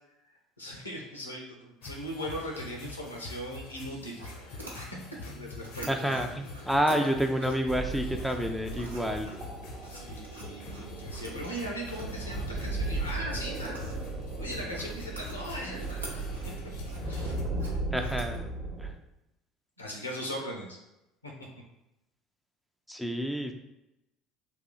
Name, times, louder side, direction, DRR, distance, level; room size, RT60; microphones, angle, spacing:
voice 1, 0.6-4.9 5.2-6.3 6.9-7.1 9.9-13.9 14.4-16.2 17.0-17.3 19.8-20.8 21.2-21.3, equal, 85° left, 0 dB, 0.8 m, -39 dB
sound 1, 1.8-17.4, left 3 dB, 55° left, 0.7 m, -45 dB
sound 2, 4.2-18.4, right 1 dB, 80° right, 0.7 m, -48 dB
voice 2, 5.9-9.3 17.9-18.5 18.8-18.9 22.9-23.5, equal, ahead, 4 dB, 0.4 m, -29 dB
sound 3, 7.7-18.9, right 2 dB, 40° right, 0.7 m, -36 dB
3.5 x 2.7 x 4.0 m, 0.89 s
figure-of-eight pair, 65°, 0 cm